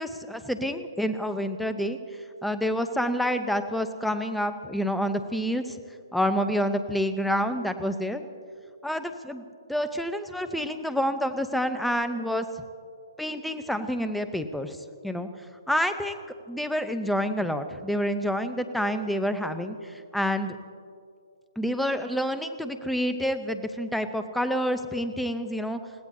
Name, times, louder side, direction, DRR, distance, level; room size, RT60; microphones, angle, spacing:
voice 1, 0.0-2.0 2.4-5.8 6.1-8.2 8.8-9.4 9.7-12.5 13.2-14.8 15.0-15.3 15.7-16.2 16.5-20.6 21.6-25.8, equal, ahead, 9 dB, 0.8 m, -28 dB
29.5 x 16.5 x 2.8 m, 2.4 s
figure-of-eight pair, 135°, 2 cm